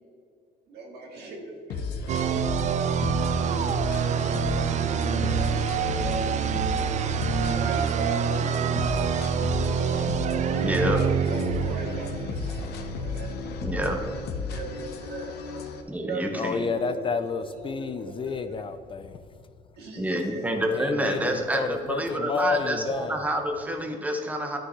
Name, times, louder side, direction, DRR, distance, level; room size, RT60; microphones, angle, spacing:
voice 1, 0.7-3.7 4.1-10.2 10.6-14.1 14.5-15.7 16.0-17.0 17.4-18.6 19.8-20.6, right 3 dB, 70° right, 0 dB, 2.0 m, -40 dB
sound 1, 1.7-15.8, left 4 dB, 75° left, 0.9 m, -34 dB
sound 2, 2.1-12.7, right 7 dB, 45° right, 0.4 m, -26 dB
voice 2, 10.6-11.0 13.6-14.0 15.9-16.7 20.0-24.6, right 1 dB, 10° right, 3 dB, 1.0 m, -28 dB
voice 3, 16.4-19.2 20.7-23.2, left 5 dB, 30° left, 10 dB, 0.4 m, -30 dB
11.5 x 6.4 x 3.1 m, 2.3 s
cardioid pair, 110°, 17 cm